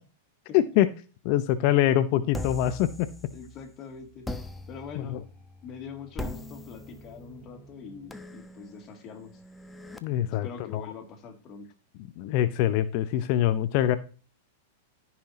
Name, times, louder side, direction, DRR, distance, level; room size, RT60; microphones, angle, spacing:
voice 1, 0.5-0.9 1.2-3.1 5.0-5.2 10.0-10.5 10.7-10.8 12.2-14.0, left 12 dB, 50° left, 13 dB, 0.7 m, -24 dB
sound 1, 2.3-3.7 4.2-10.0, left 1 dB, 10° left, 1.0 m, -41 dB
voice 2, 3.3-4.3 4.7-5.2 5.6-9.4 10.3-11.7, left 6 dB, 35° left, 3 dB, 2.6 m, -43 dB
14.5 x 5.9 x 2.9 m, 0.36 s
hypercardioid pair, 105°, 0 cm